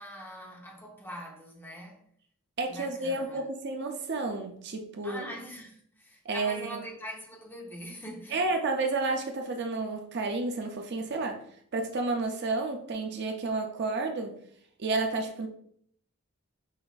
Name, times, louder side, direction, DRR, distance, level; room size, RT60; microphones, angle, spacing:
voice 1, 0.0-2.1 2.7-3.4 5.0-8.5, equal, 10° left, -2 dB, 0.8 m, -43 dB
voice 2, 2.6-5.2 6.2-6.7 8.3-11.4 11.7-14.4 14.8-15.5, right 3 dB, 55° right, 4 dB, 0.5 m, -31 dB
5.5 x 2.5 x 2.4 m, 0.63 s
head